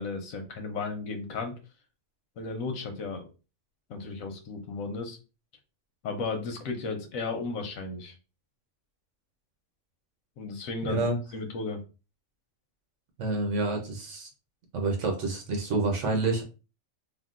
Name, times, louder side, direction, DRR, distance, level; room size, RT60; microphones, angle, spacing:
voice 1, 0.0-1.5 2.4-3.2 3.9-5.2 6.0-8.1 10.4-11.0 11.3-11.8, left 4 dB, 90° left, 5 dB, 1.1 m, -34 dB
voice 2, 13.2-14.3 14.7-16.4, right 3 dB, 65° right, 2 dB, 1.0 m, -28 dB
3.6 x 2.2 x 2.4 m, 0.30 s
omnidirectional pair, 1.4 m